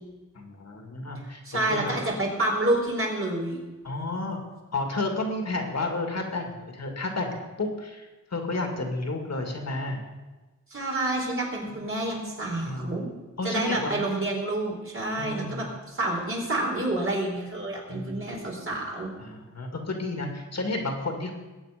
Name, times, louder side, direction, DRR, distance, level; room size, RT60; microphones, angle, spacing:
voice 1, 0.3-1.9 3.8-4.4 4.7-10.0 11.7-11.8 12.6-13.0 13.4-14.1 15.2-15.6 17.9-18.3 19.2-21.3, left 2 dB, 60° left, 3 dB, 2.5 m, -31 dB
voice 2, 1.4-3.6 10.7-13.1 13.4-19.1, right 1 dB, 45° right, -2 dB, 4.5 m, -28 dB
21.0 x 8.6 x 5.2 m, 1.2 s
wide cardioid pair, 105°, 30 cm